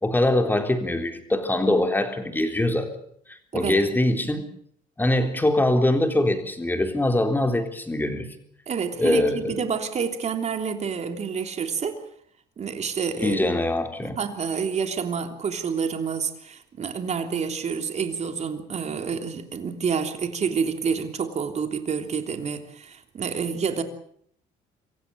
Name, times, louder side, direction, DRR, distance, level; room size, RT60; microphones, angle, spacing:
voice 1, 0.0-2.9 3.3-4.4 5.0-8.3 9.0-9.6 13.2-14.2, left 1 dB, 10° left, 5 dB, 3.7 m, -23 dB
voice 2, 8.7-12.0 12.6-13.4 14.0-23.8, right 6 dB, 40° right, 6 dB, 3.2 m, -28 dB
26.0 x 16.0 x 8.0 m, 0.65 s
cardioid pair, 110°, 17 cm